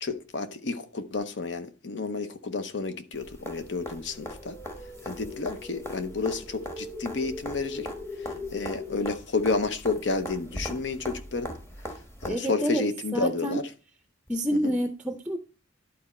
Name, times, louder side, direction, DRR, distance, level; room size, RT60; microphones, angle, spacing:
voice 1, 0.0-4.6 5.0-7.9 8.2-11.5 12.2-13.6 14.6-14.7, left 3 dB, 70° left, 0.8 m, -30 dB
sound 1, 3.1-12.3 14.3-14.4, equal, 15° left, 1.1 m, -41 dB
sound 2, 4.0-9.0, left 3 dB, 35° left, 1.7 m, -41 dB
voice 2, 12.3-12.9 13.1-13.6 14.3-15.4, equal, 5° right, 0.5 m, -28 dB
11.5 x 4.2 x 4.2 m
head